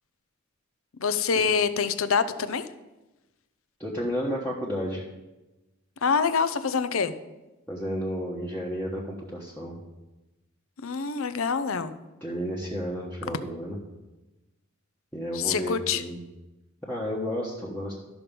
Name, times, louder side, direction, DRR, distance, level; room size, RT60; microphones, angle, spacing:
voice 1, 1.0-2.6 6.0-7.1 10.8-11.9 15.3-16.0, left 5 dB, 65° left, 12 dB, 0.6 m, -25 dB
voice 2, 3.8-5.0 7.7-9.7 12.2-13.8 15.1-16.2 16.8-17.9, equal, 10° left, -6 dB, 1.2 m, -32 dB
12.5 x 6.0 x 5.3 m, 1.1 s
head